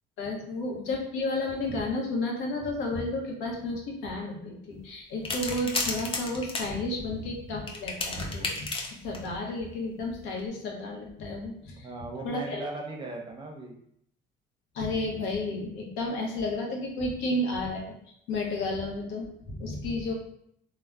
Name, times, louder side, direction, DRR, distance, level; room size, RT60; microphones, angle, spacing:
voice 1, 0.2-8.7 9.0-11.9 12.2-12.7 14.7-17.8 18.3-20.1, left 2 dB, 85° left, 0 dB, 0.7 m, -32 dB
sound 1, 5.2-6.7 7.7-9.3 10.3-10.4, left 3 dB, 30° left, 0.5 m, -32 dB
voice 2, 11.7-13.8, right 2 dB, 25° right, 1 dB, 0.6 m, -38 dB
3.1 x 2.0 x 2.3 m, 0.71 s
cardioid pair, 95°, 19 cm